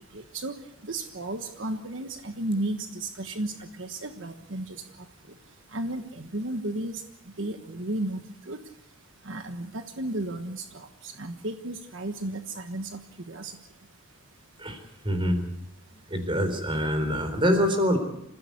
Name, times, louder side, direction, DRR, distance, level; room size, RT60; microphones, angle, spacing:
voice 1, 0.1-0.5 0.9-4.8 5.7-7.0 7.4-8.2 8.5-8.6 9.3-13.0 13.3-13.6, right 1 dB, 65° right, 6 dB, 1.3 m, -33 dB
voice 2, 15.0-15.4 16.1-18.0, equal, 25° right, 7 dB, 4.0 m, -25 dB
27.0 x 15.5 x 8.3 m, 0.82 s
head